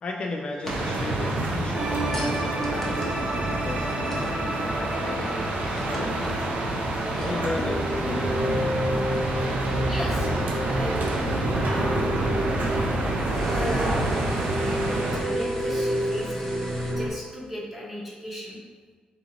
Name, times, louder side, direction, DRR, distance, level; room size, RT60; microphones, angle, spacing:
voice 1, 0.0-6.3 7.1-8.9, left 2 dB, 45° left, 0 dB, 0.3 m, -35 dB
sound 1, 0.5-4.5 4.9-6.6 7.0-7.7 8.0-8.1 9.0-9.2 10.0-10.4 10.8-10.9 12.5-16.9, left 1 dB, 10° left, 0.7 m, -41 dB
sound 2, 0.6-15.2, right 2 dB, 90° right, 0.5 m, -28 dB
sound 3, 1.7-17.1, right 1 dB, 45° right, 0.6 m, -30 dB
voice 2, 9.9-10.3 10.7-12.7 13.5-14.3 14.6-16.3 16.8-18.6, equal, 5° right, -6 dB, 1.0 m, -36 dB
3.9 x 2.8 x 3.9 m, 1.5 s
wide cardioid pair, 155°, 3 cm